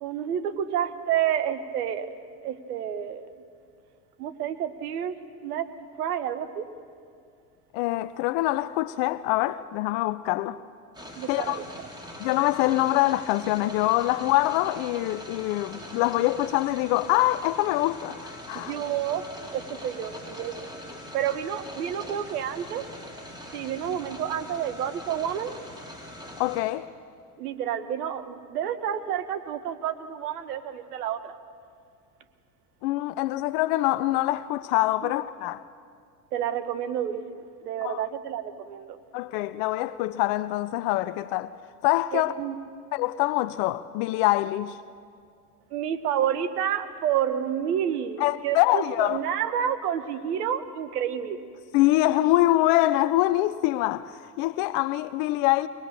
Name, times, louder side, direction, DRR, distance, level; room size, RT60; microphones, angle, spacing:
voice 1, 0.0-2.2 2.4-3.3 4.2-5.7 6.0-6.6 11.2-11.9 18.5-19.2 19.5-20.7 21.1-22.8 23.5-25.5 27.4-31.3 35.0-35.1 36.3-39.0 42.1-42.6 45.7-51.4, right 9 dB, 80° right, 1.3 m, -29 dB
voice 2, 7.7-10.6 11.3-11.6 12.2-18.7 26.4-26.9 32.8-35.6 37.8-38.0 39.1-41.5 41.8-42.3 42.9-44.8 48.2-49.2 51.7-55.7, left 16 dB, 60° left, 0.7 m, -24 dB
sound 1, 10.9-26.6, left 1 dB, 10° right, 4.0 m, -42 dB
23.5 x 19.0 x 6.7 m
hypercardioid pair, 85°, 46 cm